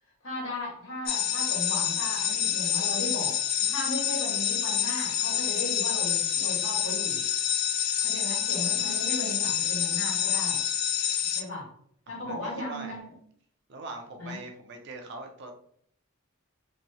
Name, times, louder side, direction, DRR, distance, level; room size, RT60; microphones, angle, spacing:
voice 1, 0.2-3.3 3.6-7.2 8.0-10.7 11.3-11.7 12.1-13.1 14.2-14.4, left 1 dB, 65° left, -4 dB, 1.5 m, -36 dB
sound 1, 1.1-11.4, left 9 dB, 45° left, 0.3 m, -27 dB
voice 2, 8.7-9.0 12.1-13.0 13.7-15.7, right 3 dB, 55° right, 3 dB, 0.5 m, -42 dB
3.0 x 2.7 x 2.7 m, 0.63 s
head